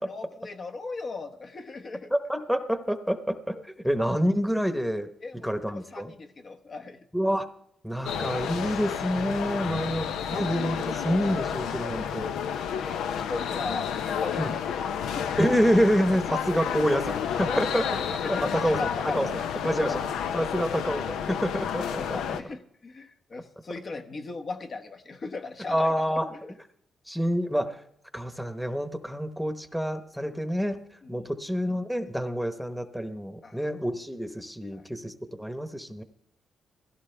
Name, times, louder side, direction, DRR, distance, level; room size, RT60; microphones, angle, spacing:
voice 1, 0.0-2.1 3.5-3.6 5.2-7.0 11.9-12.1 12.8-15.4 16.1-16.3 17.4-19.5 19.8-20.0 20.4-20.6 22.0-26.1 26.4-26.5 31.0-31.3 33.4-33.6 34.7-34.8, left 3 dB, 50° left, 5 dB, 1.1 m, -38 dB
voice 2, 2.1-3.5 3.8-5.1 5.4-6.1 7.1-7.5 7.8-12.3 13.7-13.8 14.4-14.5 15.4-18.0 18.3-18.8 19.1-19.3 19.6-19.9 20.3-22.2 25.7-26.3 27.1-27.8 28.1-30.8 31.1-36.0, equal, ahead, 9 dB, 1.0 m, -27 dB
sound 1, 8.0-22.4, left 8 dB, 85° left, 0.7 m, -31 dB
17.0 x 15.5 x 3.4 m, 0.71 s
cardioid pair, 75°, 0 cm